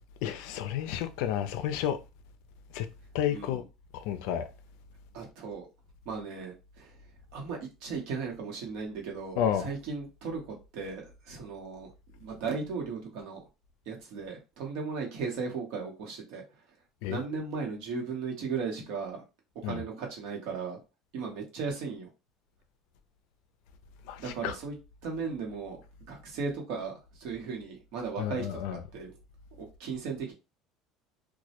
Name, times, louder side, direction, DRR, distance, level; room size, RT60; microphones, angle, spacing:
voice 1, 0.2-2.0 2.7-2.9 3.1-3.6 3.9-4.5 9.4-9.7 17.0-17.2 19.6-19.8 24.1-24.5 28.2-28.9, left 10 dB, 75° left, 0.3 m, -31 dB
voice 2, 3.3-3.6 5.1-5.7 6.0-6.9 7.3-13.4 13.9-16.4 17.1-19.2 19.6-20.8 21.1-22.1 24.2-24.7 25.0-25.8 26.1-29.1 29.6-30.3, right 5 dB, 65° right, 0.9 m, -36 dB
2.1 x 2.0 x 2.8 m
cardioid pair, 150°, 0 cm